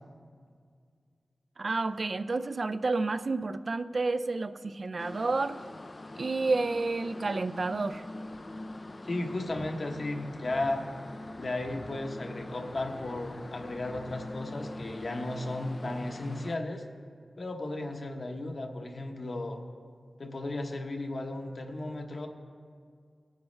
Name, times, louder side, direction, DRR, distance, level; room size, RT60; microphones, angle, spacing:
voice 1, 1.6-5.6 6.2-8.0, right 3 dB, 50° right, 12 dB, 0.3 m, -30 dB
sound 1, 5.0-16.6, left 2 dB, 30° left, 0.3 m, -43 dB
voice 2, 9.0-10.8 11.3-16.8 17.4-19.6 20.2-22.3, left 2 dB, 55° left, 3 dB, 1.0 m, -35 dB
20.0 x 9.2 x 3.2 m, 2.1 s
wide cardioid pair, 95°, 0 cm